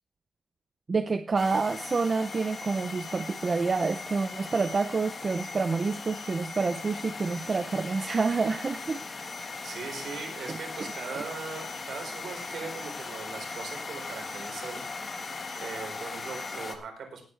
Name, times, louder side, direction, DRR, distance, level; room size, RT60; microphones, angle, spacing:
voice 1, 0.9-9.0 10.5-10.6, right 4 dB, 25° right, 9 dB, 0.6 m, -28 dB
sound 1, 1.4-16.8, left 4 dB, 30° left, 1.4 m, -39 dB
voice 2, 9.6-14.8 15.6-17.2, right 5 dB, 55° right, 3 dB, 4.4 m, -40 dB
19.0 x 9.2 x 3.3 m, 0.41 s
wide cardioid pair, 170°, 0 cm